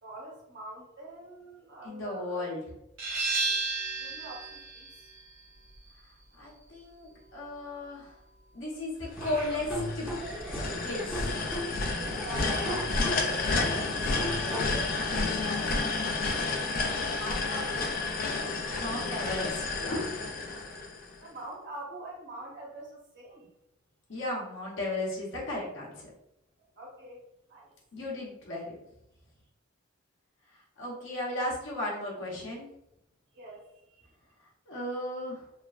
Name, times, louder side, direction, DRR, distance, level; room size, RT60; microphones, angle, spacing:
voice 1, 0.0-2.6 3.9-5.1 12.1-13.0 17.1-17.9 21.2-23.5 26.8-27.2 27.5-27.7 33.3-33.7, right 1 dB, 55° right, -3 dB, 1.0 m, -44 dB
voice 2, 1.8-2.6 6.4-8.1 8.5-10.1 10.6-11.3 14.5-16.0 16.3-16.6 18.8-20.2 24.1-26.1 27.9-28.7 30.8-32.7 34.7-35.4, left 1 dB, 60° left, -3 dB, 0.8 m, -35 dB
sound 1, 3.0-8.4, right 3 dB, 80° right, 1.2 m, -35 dB
Laughter / Drum, 9.1-15.1, equal, 5° right, 0.6 m, -37 dB
sound 2, 9.2-21.3, left 3 dB, 45° left, 0.3 m, -31 dB
3.1 x 2.1 x 2.4 m, 0.85 s
head